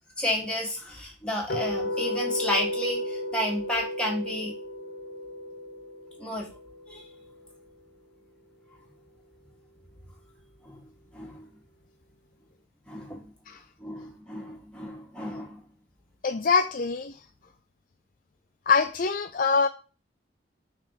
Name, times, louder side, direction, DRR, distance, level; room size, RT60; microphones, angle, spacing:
voice 1, 0.2-4.5 6.2-6.5 6.9-7.0 10.6-10.8 11.1-11.5 12.9-13.2 13.8-15.6, left 1 dB, 5° left, 1.8 m, -31 dB
sound 1, 1.5-7.6, left 1 dB, 60° left, 1.3 m, -34 dB
voice 2, 16.2-17.2 18.7-19.7, left 5 dB, 45° left, 0.4 m, -24 dB
5.6 x 4.3 x 5.5 m
head